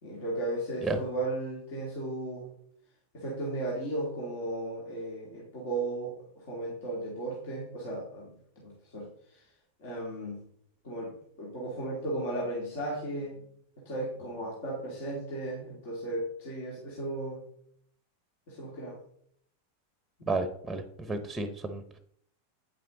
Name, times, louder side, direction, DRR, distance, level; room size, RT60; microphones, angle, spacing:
voice 1, 0.0-2.5 3.1-9.4 9.8-10.4 10.8-13.4 13.8-17.4 18.5-19.0 20.2-20.3, right 2 dB, 50° left, -4 dB, 2.8 m, -35 dB
voice 2, 20.3-22.0, right 3 dB, 10° right, 9 dB, 0.9 m, -32 dB
9.5 x 7.7 x 3.9 m, 0.67 s
figure-of-eight pair, 90°, 0 cm